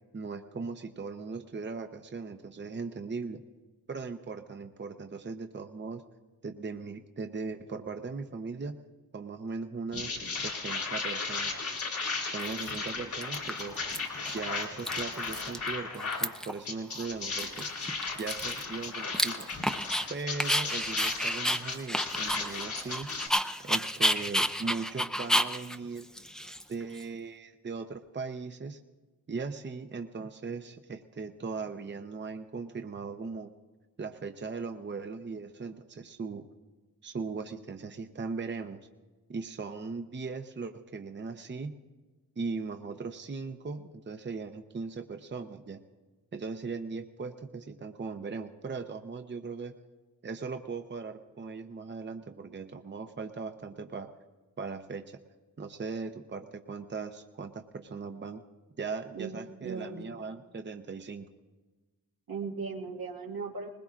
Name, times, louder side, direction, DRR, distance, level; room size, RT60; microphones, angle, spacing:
voice 1, 0.1-3.4 3.9-6.0 6.4-8.8 9.1-11.5 12.3-13.8 14.3-17.7 18.2-19.6 20.1-23.1 23.6-26.1 26.7-28.8 29.3-33.5 34.0-36.5 37.0-38.8 39.3-41.8 42.4-45.8 46.3-49.7 50.2-54.1 54.6-55.2 55.6-58.4 58.8-61.3, right 4 dB, 30° right, 6 dB, 0.8 m, -38 dB
sound 1, 9.9-16.3 16.6-23.3, left 4 dB, 75° left, 2.6 m, -35 dB
Dog, 11.7-11.8 12.4-12.9 13.2-14.0 14.3-14.4 14.6-15.7 15.9-16.6 17.0-17.1 17.4-20.1 20.4-27.0, equal, ahead, 0.6 m, -31 dB
voice 2, 59.6-60.1 62.3-63.7, right 5 dB, 80° right, -3 dB, 1.8 m, -37 dB
20.5 x 20.0 x 2.5 m, 1.2 s
cardioid pair, 60°, 35 cm